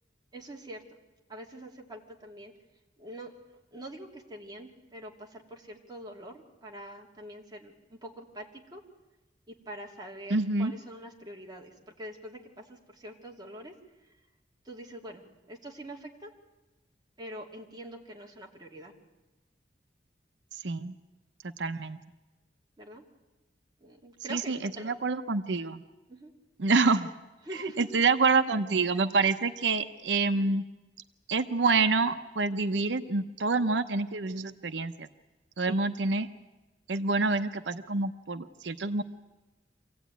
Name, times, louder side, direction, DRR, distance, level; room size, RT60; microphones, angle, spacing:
voice 1, 0.3-1.0 1.3-2.5 3.0-3.3 3.7-8.8 9.5-13.7 14.6-16.3 17.2-18.9 22.8-23.0 23.8-24.9 26.1-26.3 27.4-28.0 35.7-35.8, right 1 dB, 25° right, 0 dB, 2.9 m, -44 dB
voice 2, 10.3-10.7 20.5-20.9 21.6-22.0 24.3-25.8 26.6-27.1 27.8-30.6 31.3-35.1 35.6-36.3 36.9-39.0, right 4 dB, 85° right, 10 dB, 0.8 m, -27 dB
25.5 x 16.5 x 9.4 m, 1.1 s
head